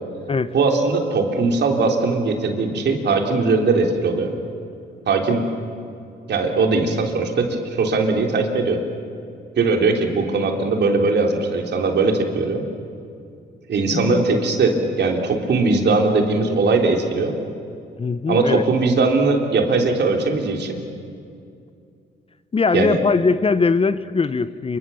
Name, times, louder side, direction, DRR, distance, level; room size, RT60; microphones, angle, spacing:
voice 1, 0.5-4.3 5.1-5.4 6.3-8.8 9.6-12.6 13.7-17.3 18.3-20.8 22.7-23.0, right 3 dB, 60° right, 3 dB, 3.5 m, -20 dB
voice 2, 18.0-18.6 22.5-24.8, left 4 dB, 30° left, 14 dB, 0.8 m, -20 dB
27.5 x 25.0 x 7.1 m, 2.5 s
cardioid pair, 90°, 20 cm